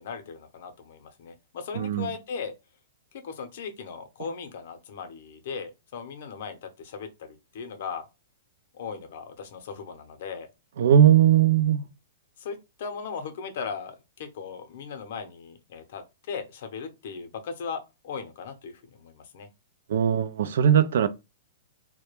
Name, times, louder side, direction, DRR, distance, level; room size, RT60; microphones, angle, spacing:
voice 1, 0.0-2.5 3.2-8.1 8.7-10.5 12.4-19.5, left 6 dB, 60° left, 0.6 m, -38 dB
voice 2, 1.7-2.1 4.2-4.3 10.8-11.8 19.9-21.1, right 9 dB, 70° right, 0.3 m, -19 dB
2.3 x 2.1 x 3.0 m
hypercardioid pair, 130°, 0 cm